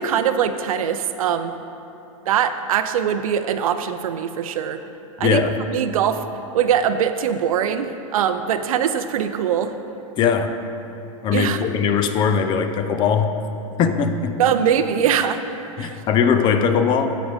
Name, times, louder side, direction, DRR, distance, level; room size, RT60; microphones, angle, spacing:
voice 1, 0.0-1.5 2.3-4.8 5.2-5.4 5.7-6.2 6.5-9.8 11.3-11.6 14.4-15.4 15.8-16.0, right 8 dB, 80° right, 10 dB, 0.5 m, -22 dB
voice 2, 5.2-5.6 10.2-10.6 11.2-13.3 13.8-14.4 15.8-17.2, left 6 dB, 25° left, 8 dB, 0.4 m, -20 dB
12.5 x 5.1 x 3.5 m, 2.9 s
supercardioid pair, 135°, 18 cm